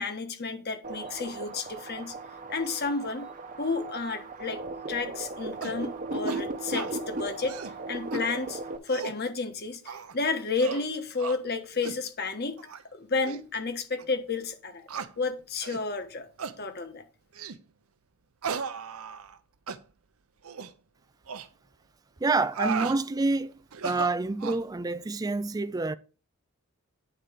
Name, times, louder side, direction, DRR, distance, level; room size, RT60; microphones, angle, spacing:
voice 1, 0.0-2.1 2.5-3.3 3.6-4.6 4.9-7.6 7.9-12.6 12.9-14.9 15.2-16.3 16.6-17.0, left 4 dB, 45° left, 1.2 m, -31 dB
sound 1, 0.8-8.8, right 2 dB, 35° right, 0.8 m, -37 dB
sound 2, 5.6-5.8 6.3-6.4 6.7-6.9 7.4-7.8 8.1-8.2 8.7-9.2 9.9-10.2 10.6-10.9 11.2-11.4 11.8-12.0 12.6-12.8 13.2-13.4 14.0-14.1 14.9-15.1 15.6-15.8 16.4-16.6 17.3-17.6 18.4-19.4 19.7-19.8 20.4-20.7 21.3-21.5 22.3-23.0 23.7-24.6, right 5 dB, 70° right, 0.7 m, -35 dB
voice 2, 22.2-23.6 23.8-25.9, right 3 dB, 15° right, 0.3 m, -27 dB
9.1 x 4.2 x 5.0 m
head